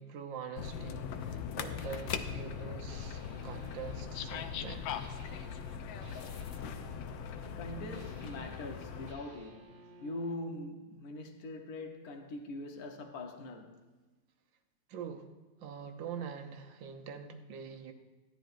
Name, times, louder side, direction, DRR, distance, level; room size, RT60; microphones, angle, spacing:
voice 1, 0.0-4.9 14.9-15.3 15.6-17.9, right 7 dB, 80° right, 1.6 m, -44 dB
sound 1, 0.6-9.1, left 7 dB, 80° left, 1.4 m, -40 dB
sound 2, 1.8-10.5, right 3 dB, 40° right, 0.8 m, -55 dB
voice 2, 7.6-9.8 10.0-13.8, left 1 dB, 55° left, 1.4 m, -42 dB
16.0 x 11.0 x 2.6 m
omnidirectional pair, 2.0 m